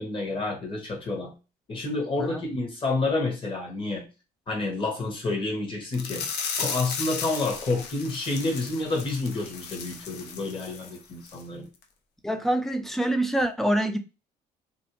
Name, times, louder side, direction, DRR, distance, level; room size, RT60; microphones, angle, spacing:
voice 1, 0.0-1.3 1.7-4.1 4.5-6.3 6.6-11.7, left 3 dB, 30° left, 1.0 m, -29 dB
sound 1, 5.9-11.0 11.3-11.4 11.8-11.9, left 6 dB, 75° left, 0.5 m, -35 dB
voice 2, 12.2-14.0, right 1 dB, ahead, 0.3 m, -25 dB
2.5 x 2.0 x 2.8 m
cardioid pair, 110°, 17 cm